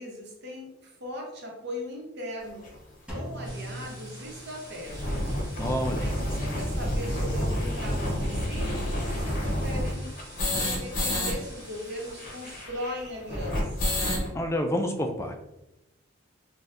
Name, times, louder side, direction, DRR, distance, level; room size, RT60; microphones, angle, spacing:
voice 1, 0.0-2.7 3.1-5.4 5.9-10.1 10.5-14.2, left 1 dB, 60° right, 0 dB, 0.8 m, -39 dB
sound 1, 2.7-2.8 3.4-3.5 3.8-3.9 4.2-4.3 4.7-11.3 11.6-11.7 11.9-14.3, left 1 dB, 45° left, 0.8 m, -29 dB
Drum, 3.1-5.0, right 1 dB, 5° right, 0.7 m, -40 dB
sound 2, 3.4-12.7, right 1 dB, 20° right, 1.4 m, -48 dB
voice 2, 5.6-6.1 14.3-15.3, equal, 15° left, 4 dB, 0.3 m, -28 dB
4.3 x 2.2 x 2.5 m, 0.90 s
head